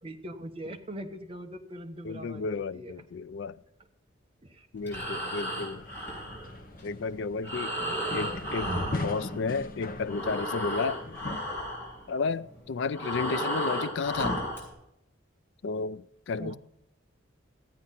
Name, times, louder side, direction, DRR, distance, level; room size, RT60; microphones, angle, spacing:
voice 1, 0.0-3.0 4.4-4.7 16.4-16.6, right 1 dB, 30° right, 1.1 m, -41 dB
voice 2, 2.0-3.6 4.7-5.8 6.8-7.7 8.1-11.0 12.1-14.4 15.6-16.6, left 4 dB, 65° left, 0.4 m, -32 dB
Breathing, 4.7-9.7 10.0-14.7, equal, 10° left, 5.3 m, -34 dB
sound 1, 4.8-11.4, left 2 dB, 45° left, 0.8 m, -41 dB
14.0 x 8.7 x 4.2 m
head